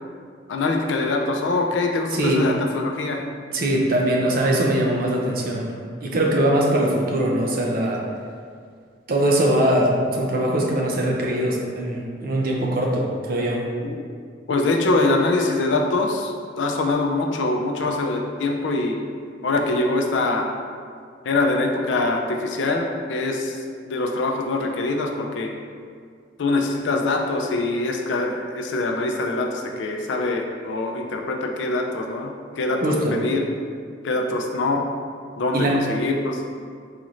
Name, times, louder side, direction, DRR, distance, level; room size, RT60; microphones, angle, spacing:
voice 1, 0.5-3.2 13.8-14.0 14.5-19.0 19.4-20.5 21.2-23.6 23.9-25.5 26.4-32.8 33.1-33.4 34.0-34.9 35.4-36.4, left 2 dB, 80° left, 2 dB, 0.4 m, -23 dB
voice 2, 2.1-2.5 3.5-5.7 6.0-8.0 9.1-13.6 32.8-33.2 35.5-35.8, right 1 dB, 55° right, -1 dB, 0.5 m, -21 dB
4.0 x 2.5 x 3.1 m, 2.1 s
head